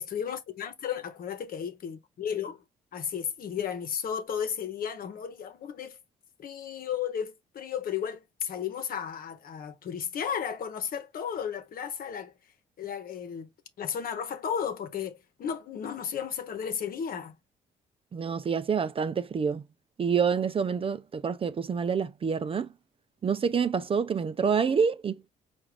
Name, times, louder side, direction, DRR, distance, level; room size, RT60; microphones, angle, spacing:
voice 1, 0.0-2.6 2.9-6.0 6.4-12.3 12.8-13.5 13.8-17.3, left 8 dB, 60° left, 1.1 m, -34 dB
voice 2, 18.1-19.6 20.0-22.7 23.2-25.2, right 6 dB, 35° right, 0.5 m, -27 dB
4.7 x 2.6 x 3.2 m
supercardioid pair, 65°, 17 cm